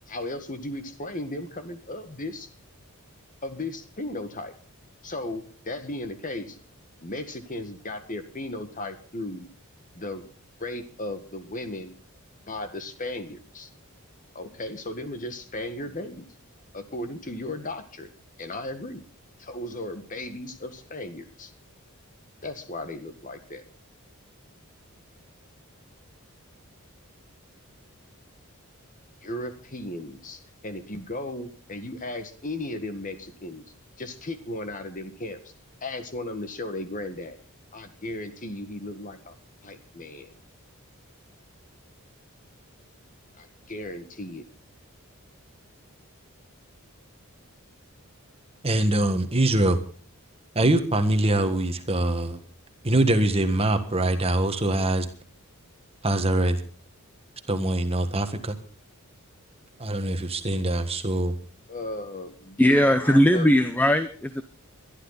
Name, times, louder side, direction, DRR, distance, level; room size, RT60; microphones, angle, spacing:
voice 1, 0.1-2.5 3.4-4.5 5.0-6.6 7.0-9.5 9.9-10.3 10.6-11.9 12.5-13.7 14.3-16.3 16.7-18.1 18.4-19.0 19.4-21.5 22.4-23.6 29.2-33.6 34.0-35.5 35.8-37.4 37.7-39.3 39.6-40.3 43.4-44.4 61.7-63.5, left 1 dB, 35° left, 1.8 m, -36 dB
voice 2, 48.6-49.8 50.5-52.4 52.8-55.1 56.0-56.6 57.5-58.6 59.8-61.3, right 1 dB, 25° right, 1.6 m, -23 dB
voice 3, 62.6-64.4, equal, 10° left, 0.7 m, -19 dB
22.0 x 12.0 x 4.1 m
head